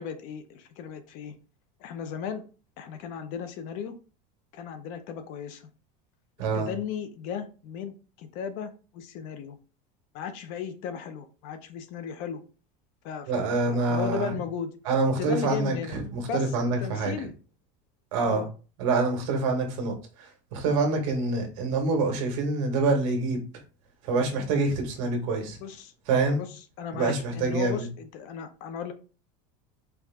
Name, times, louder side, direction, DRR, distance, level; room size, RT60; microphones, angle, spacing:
voice 1, 0.0-1.3 1.8-2.4 2.8-3.9 4.5-5.7 6.4-9.6 10.1-12.4 13.0-14.8 15.1-16.0 16.3-17.3 18.2-18.5 25.6-25.9 26.3-26.5 26.8-28.9, left 7 dB, 50° left, 0.6 m, -36 dB
voice 2, 13.3-14.4 14.8-17.1 18.1-18.4 18.8-23.4 24.0-25.6 26.1-26.4 26.9-27.9, right 3 dB, 65° right, 1.5 m, -26 dB
4.7 x 2.6 x 3.5 m
cardioid pair, 165°, 17 cm